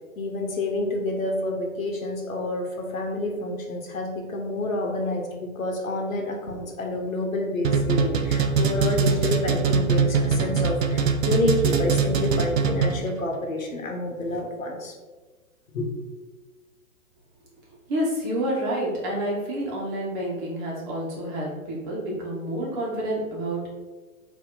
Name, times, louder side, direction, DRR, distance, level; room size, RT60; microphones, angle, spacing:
voice 1, 0.2-14.9 15.7-15.9, left 2 dB, 75° left, 2 dB, 1.0 m, -28 dB
sound 1, 7.6-13.2, right 5 dB, 65° right, 0.6 m, -22 dB
voice 2, 17.9-23.7, right 1 dB, 35° right, -4 dB, 1.4 m, -29 dB
4.1 x 2.9 x 3.8 m, 1.3 s
figure-of-eight pair, 120°, 42 cm